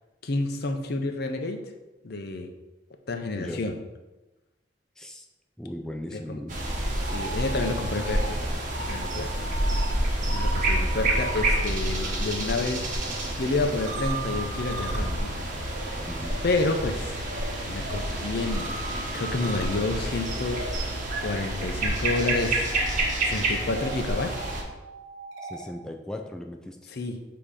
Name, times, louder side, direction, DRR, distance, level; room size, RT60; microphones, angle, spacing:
voice 1, 0.2-1.6 2.0-2.5 3.1-3.8 6.1-6.4 7.0-9.3 10.2-12.9 13.4-15.3 15.9-16.0 16.4-17.2 17.7-20.6 21.2-22.8 23.2-24.4 26.9-27.2, left 2 dB, 60° left, 5 dB, 0.6 m, -29 dB
voice 2, 5.6-6.6 16.1-16.3 25.5-26.8, left 1 dB, 5° left, 2 dB, 0.4 m, -37 dB
sound 1, 6.5-24.6, right 1 dB, 45° right, 1.2 m, -29 dB
sound 2, 6.9-12.1 12.4-25.7, right 2 dB, 85° right, 1.1 m, -40 dB
7.3 x 2.9 x 4.9 m, 1.1 s
head